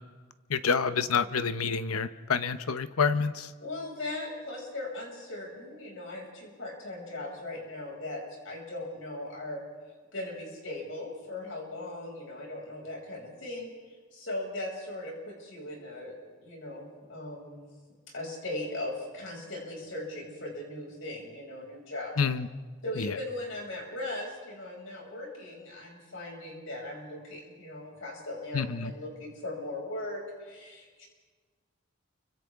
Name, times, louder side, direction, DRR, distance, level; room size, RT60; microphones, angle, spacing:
voice 1, 0.5-3.5 22.2-22.5 23.0-23.1 28.5-28.9, left 5 dB, 90° left, 12 dB, 0.8 m, -28 dB
voice 2, 3.6-9.6 10.1-13.7 14.1-16.1 16.4-17.6 18.1-22.1 22.8-28.6 28.9-31.1, left 1 dB, 65° left, -1 dB, 6.1 m, -38 dB
30.0 x 24.5 x 3.6 m, 1.4 s
head